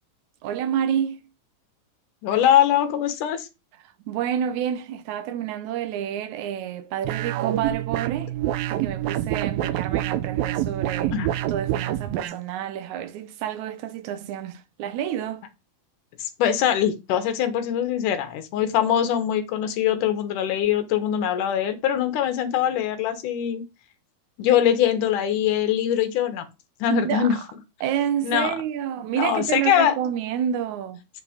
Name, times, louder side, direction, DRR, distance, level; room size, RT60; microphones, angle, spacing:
voice 1, 0.4-1.3 4.1-8.3 8.7-15.4 26.9-27.4 27.8-31.0, right 9 dB, 70° right, 2.0 m, -29 dB
voice 2, 2.2-3.5 11.1-11.3 16.2-23.6 24.4-26.5 26.8-27.4 28.2-28.5 29.2-29.9, left 10 dB, 70° left, 2.5 m, -22 dB
sound 1, 7.0-12.4, right 13 dB, 90° right, 2.4 m, -27 dB
8.0 x 4.1 x 4.9 m
omnidirectional pair, 3.9 m